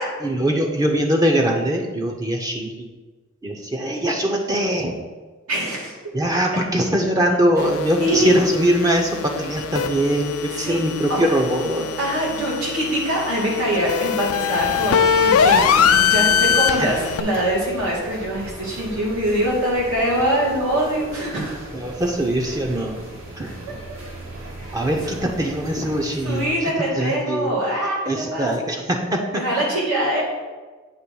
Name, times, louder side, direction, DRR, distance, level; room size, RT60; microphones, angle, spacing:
voice 1, 0.2-2.9 3.4-5.0 6.1-11.9 16.7-16.9 21.7-23.0 23.4-23.8 24.7-27.5 28.1-29.4, right 1 dB, 15° right, 1 dB, 0.6 m, -22 dB
voice 2, 5.5-6.0 8.0-8.4 10.6-10.8 12.0-21.6 23.4-23.5 23.9-24.0 24.6-24.7 26.2-28.5 29.3-30.2, right 1 dB, 85° right, -5 dB, 2.4 m, -23 dB
sound 1, 7.6-17.2, left 7 dB, 90° left, 0.5 m, -22 dB
sound 2, 14.6-26.5, right 2 dB, 70° right, 1.4 m, -38 dB
8.3 x 3.1 x 6.1 m, 1.3 s
head